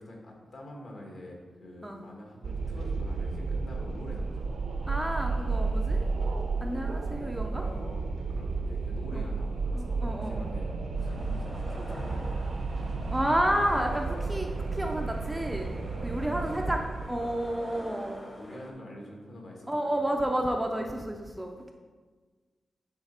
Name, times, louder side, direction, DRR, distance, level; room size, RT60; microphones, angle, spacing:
voice 1, 0.0-4.6 6.9-12.4 14.1-14.3 15.9-16.6 17.2-17.4 18.3-20.7, left 1 dB, 50° left, 0 dB, 1.4 m, -46 dB
Wind, 2.4-17.8, right 3 dB, 60° right, 0.6 m, -32 dB
voice 2, 4.9-6.0 6.6-7.6 9.1-9.2 9.7-10.5 13.1-14.5 14.7-15.7 16.0-16.8 17.1-18.2 19.7-21.7, right 1 dB, 5° right, 2 dB, 0.4 m, -30 dB
sound 1, 11.0-18.7, left 1 dB, 15° left, 0.9 m, -46 dB
8.9 x 4.0 x 4.3 m, 1.4 s
wide cardioid pair, 180°, 0 cm